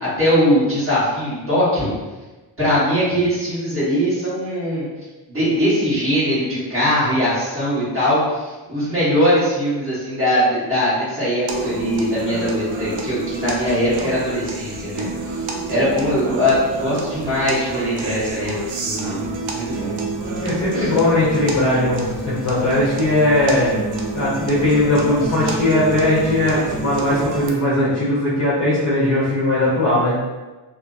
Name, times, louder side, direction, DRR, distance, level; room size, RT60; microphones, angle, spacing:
voice 1, 0.0-1.9 2.6-4.8 5.3-18.5 18.8-19.2 19.5-19.9 20.8-20.9, equal, 30° right, -11 dB, 1.4 m, -21 dB
sound 1, 11.5-27.5, right 2 dB, 85° right, 0.5 m, -28 dB
voice 2, 20.4-23.7 24.1-30.2, left 1 dB, 35° left, -9 dB, 0.7 m, -19 dB
2.7 x 2.5 x 2.4 m, 1.2 s
wide cardioid pair, 180°, 45 cm